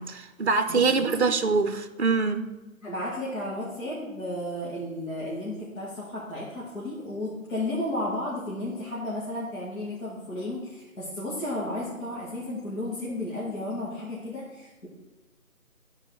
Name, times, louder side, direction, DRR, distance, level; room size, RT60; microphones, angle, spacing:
voice 1, 0.0-2.5, right 4 dB, 50° right, 10 dB, 0.6 m, -24 dB
voice 2, 0.7-1.2 2.8-14.9, left 1 dB, 60° left, -8 dB, 2.4 m, -33 dB
11.0 x 4.8 x 4.9 m, 1.1 s
figure-of-eight pair, 155°, 43 cm